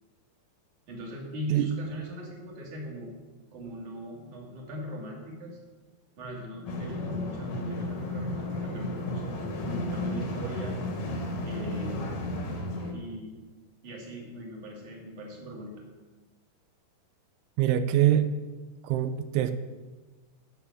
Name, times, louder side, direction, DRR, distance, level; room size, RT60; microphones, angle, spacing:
voice 1, 0.9-3.1 3.5-5.6 6.2-10.8 11.4-12.1 12.9-13.4 13.8-15.8, equal, 45° right, -2 dB, 3.3 m, -40 dB
sound 1, 6.7-12.9, left 1 dB, 60° left, 2.5 m, -33 dB
voice 2, 17.6-18.3 18.8-19.5, right 12 dB, 85° right, 10 dB, 2.9 m, -24 dB
11.5 x 7.1 x 7.1 m, 1.3 s
omnidirectional pair, 5.6 m